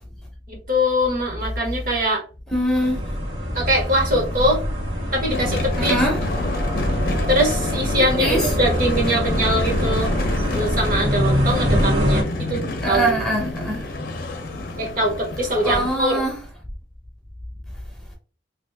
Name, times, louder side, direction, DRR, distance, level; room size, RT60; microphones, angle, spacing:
voice 1, 0.5-2.2 3.5-4.6 5.1-6.0 7.3-10.1 10.5-13.2 14.8-16.2, equal, 45° right, 1.1 m, -22 dB
voice 2, 2.5-3.0 5.8-6.2 8.2-8.5 12.8-13.9 15.6-16.4, right 1 dB, 5° left, 0.8 m, -22 dB
sound 1, 2.8-12.2, equal, 85° right, 1.5 m, -24 dB
sound 2, 5.3-16.0, left 2 dB, 50° left, 0.7 m, -28 dB
3.0 x 2.6 x 3.3 m
head